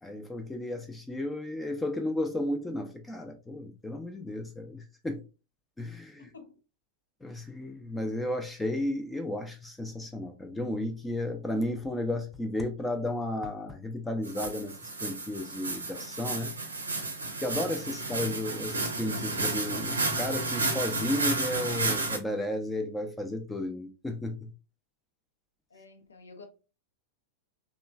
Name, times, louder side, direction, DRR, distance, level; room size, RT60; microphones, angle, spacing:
voice 1, 0.0-5.3 5.8-6.3 7.2-16.5 17.4-24.5, left 1 dB, 10° left, 0.5 m, -33 dB
voice 2, 6.2-6.6 25.7-26.5, left 4 dB, 75° left, 0.6 m, -50 dB
sound 1, 14.2-22.2, right 3 dB, 80° right, 0.6 m, -32 dB
2.9 x 2.2 x 2.3 m
figure-of-eight pair, 95°, 0 cm